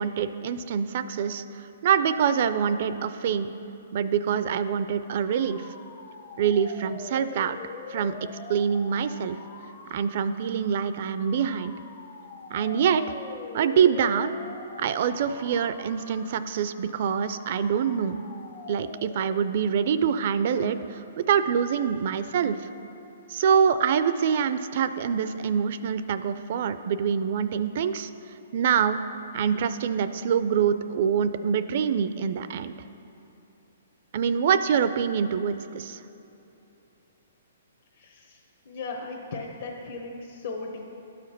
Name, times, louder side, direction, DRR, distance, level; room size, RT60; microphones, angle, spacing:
voice 1, 0.0-1.4 1.8-3.5 3.9-5.6 6.4-7.6 7.9-8.1 8.5-9.4 9.9-11.7 12.5-13.0 13.5-14.3 14.8-18.2 18.7-22.6 23.3-28.1 28.5-29.0 29.3-32.7 34.1-36.0, right 7 dB, 50° right, 12 dB, 0.4 m, -25 dB
sound 1, 4.9-19.6, left 6 dB, 30° left, 0.5 m, -45 dB
voice 2, 38.0-38.4 38.7-40.9, left 3 dB, 60° left, -2 dB, 1.0 m, -37 dB
12.0 x 4.9 x 5.9 m, 2.9 s
hypercardioid pair, 155°, 0 cm